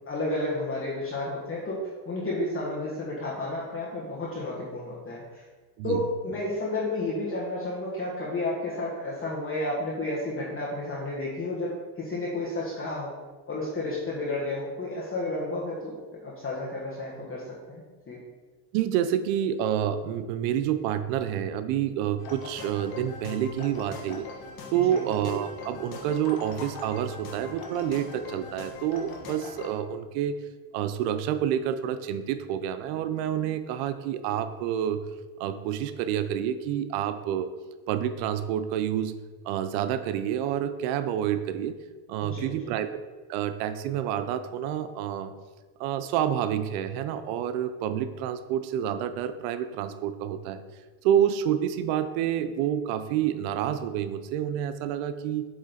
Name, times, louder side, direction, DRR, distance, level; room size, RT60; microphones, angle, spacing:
voice 1, 0.1-1.8 2.0-5.4 5.8-13.1 13.5-16.0 16.2-17.4 17.7-18.2 24.7-25.0 42.2-42.6, left 2 dB, 30° left, -5 dB, 1.4 m, -31 dB
voice 2, 5.8-6.1 18.7-24.3 24.7-30.4 30.7-35.0 35.4-37.5 37.9-41.7 42.1-42.9 43.3-45.3 45.8-50.6 51.0-55.4, right 10 dB, 85° right, 11 dB, 0.6 m, -28 dB
sound 1, 22.2-29.8, left 4 dB, 50° left, 1.4 m, -41 dB
7.9 x 3.2 x 4.1 m, 1.4 s
supercardioid pair, 105°, 46 cm